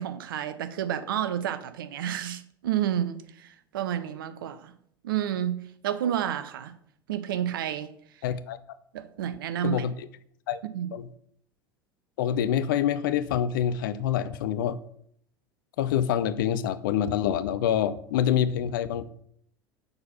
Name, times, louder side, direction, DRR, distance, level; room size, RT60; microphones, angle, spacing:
voice 1, 0.0-4.7 5.0-5.6 5.8-6.7 7.1-7.9 8.9-9.8 10.7-10.9, right 10 dB, 65° right, 0.6 m, -30 dB
voice 2, 8.2-8.6 9.6-10.1 10.5-10.6 10.9-11.1 12.2-14.8 15.8-19.2, left 9 dB, 60° left, 0.5 m, -26 dB
6.8 x 4.2 x 5.5 m
figure-of-eight pair, 70°, 12 cm